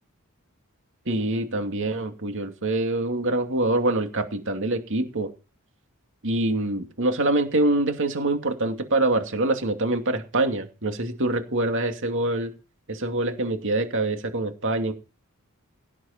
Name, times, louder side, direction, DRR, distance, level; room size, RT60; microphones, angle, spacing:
voice 1, 1.1-5.3 6.2-12.5 12.9-14.9, right 2 dB, 65° right, 5 dB, 2.5 m, -25 dB
17.0 x 8.5 x 4.3 m, 0.33 s
head